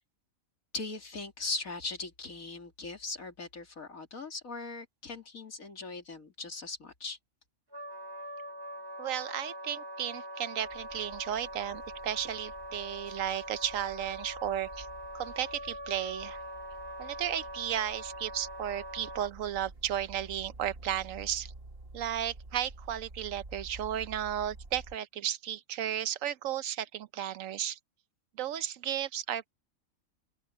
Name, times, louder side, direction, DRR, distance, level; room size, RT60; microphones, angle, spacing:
voice 1, 0.7-7.2, left 3 dB, 85° left, 3.3 m, -39 dB
Wind instrument woodwind instrument, 7.7-19.3, equal, 25° right, 0.7 m, -43 dB
voice 2, 9.0-14.9 15.1-16.4 17.0-21.5 21.9-27.8 28.4-29.5, right 10 dB, 75° right, 1.1 m, -34 dB
sound 1, 10.6-25.0, right 2 dB, 45° right, 2.2 m, -50 dB
open air
omnidirectional pair, 1.4 m